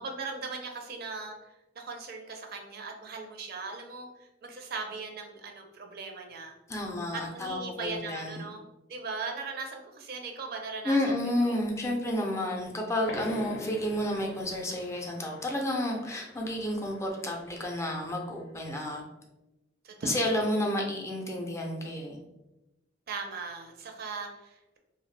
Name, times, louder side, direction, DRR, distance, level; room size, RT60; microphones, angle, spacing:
voice 1, 0.0-1.5 1.8-6.5 7.1-11.6 19.8-20.5 23.1-24.8, right 4 dB, 55° right, 3 dB, 0.4 m, -39 dB
voice 2, 6.7-8.4 10.8-19.0 20.1-22.2, left 1 dB, 15° left, 0 dB, 0.4 m, -31 dB
sound 1, 13.0-18.3, left 2 dB, 85° left, 0.5 m, -44 dB
2.7 x 2.1 x 3.1 m, 0.99 s
head